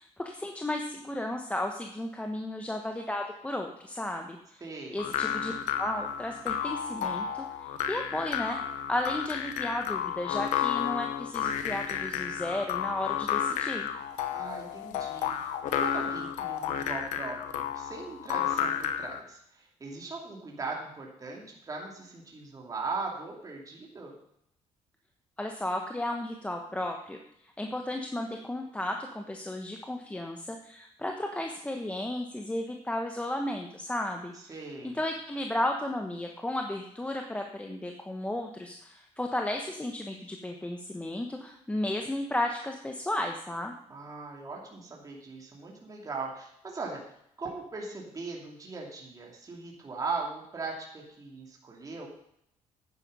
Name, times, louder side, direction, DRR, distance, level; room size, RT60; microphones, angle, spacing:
voice 1, 0.0-5.5 5.8-8.6 8.9-13.9 25.4-27.2 27.6-34.5 34.8-43.7, left 1 dB, 10° left, 3 dB, 1.1 m, -34 dB
voice 2, 4.6-5.0 14.3-24.1 34.5-35.0 43.9-47.0 47.4-52.1, right 4 dB, 30° right, -1 dB, 2.7 m, -39 dB
sound 1, 5.0-19.2, left 9 dB, 85° left, 1.1 m, -32 dB
9.9 x 9.3 x 5.5 m, 0.74 s
cardioid pair, 100°, 13 cm